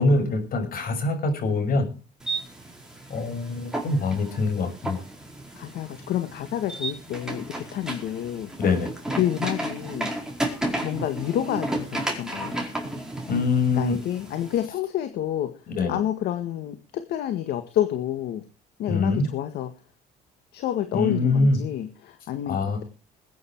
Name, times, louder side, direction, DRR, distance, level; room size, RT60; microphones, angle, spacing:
voice 1, 0.0-1.9 3.1-5.0 8.6-8.9 13.3-14.0 15.7-16.0 18.9-19.3 20.9-21.6 22.5-22.8, left 3 dB, 60° left, 7 dB, 6.3 m, -24 dB
sound 1, 2.2-14.7, right 1 dB, 5° right, 4.7 m, -33 dB
voice 2, 5.6-8.5 9.2-10.1 10.8-12.6 13.7-15.5 15.9-18.4 18.8-19.7 20.5-22.8, left 11 dB, 75° left, 8 dB, 1.8 m, -29 dB
21.0 x 9.6 x 4.7 m, 0.34 s
cardioid pair, 110°, 17 cm